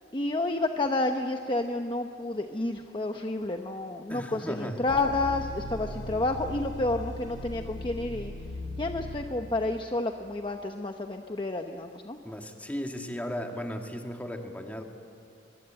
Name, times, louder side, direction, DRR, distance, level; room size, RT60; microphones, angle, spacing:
voice 1, 0.1-8.3 8.8-12.2, left 2 dB, 25° left, 5 dB, 0.9 m, -30 dB
voice 2, 4.1-4.9 12.2-14.8, equal, 10° left, 3 dB, 2.0 m, -36 dB
sound 1, 4.9-9.8, left 2 dB, 85° left, 4.0 m, -38 dB
24.5 x 23.0 x 9.0 m, 2.4 s
head